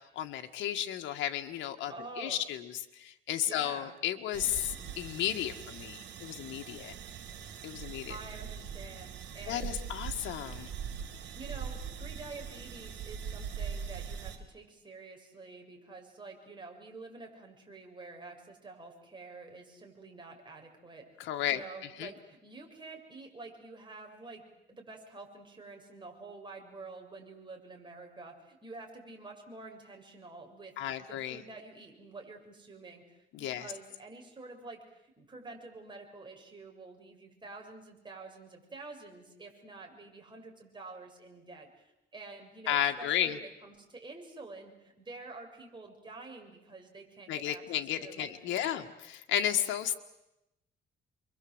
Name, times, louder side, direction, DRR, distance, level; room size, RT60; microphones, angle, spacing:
voice 1, 0.2-6.9 7.6-8.2 9.5-10.7 21.2-21.6 22.0-22.1 30.8-31.4 33.3-33.7 42.7-43.4 47.3-49.9, left 11 dB, 85° left, 5 dB, 1.7 m, -33 dB
voice 2, 1.9-2.4 3.5-3.9 8.1-9.9 11.3-21.1 21.4-24.4 24.7-48.9, right 3 dB, 25° right, 1 dB, 7.1 m, -48 dB
sound 1, 4.3-14.4, right 7 dB, 70° right, 3.8 m, -42 dB
28.0 x 24.0 x 8.0 m, 0.90 s
cardioid pair, 100°, 19 cm